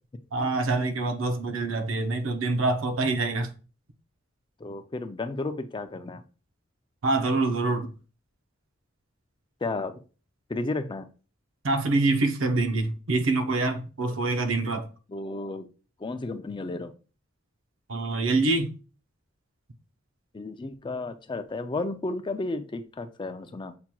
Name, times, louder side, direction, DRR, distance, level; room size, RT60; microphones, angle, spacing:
voice 1, 0.3-3.5 7.0-7.9 11.6-14.9 17.9-18.7, right 2 dB, 90° right, 0.7 m, -25 dB
voice 2, 4.6-6.2 9.6-10.0 10.5-11.1 15.1-15.7 16.0-16.9 20.3-23.7, left 2 dB, 25° left, 0.4 m, -33 dB
6.8 x 3.0 x 2.2 m
head